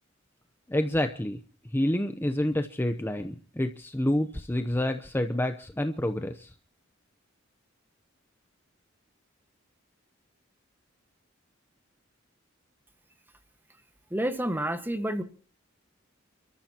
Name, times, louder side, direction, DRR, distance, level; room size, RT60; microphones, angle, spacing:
voice 1, 0.7-1.4 1.7-6.5, left 1 dB, 10° left, 7 dB, 0.7 m, -28 dB
voice 2, 14.1-15.2, right 1 dB, 10° right, 9 dB, 1.4 m, -29 dB
29.0 x 13.5 x 2.9 m, 0.38 s
head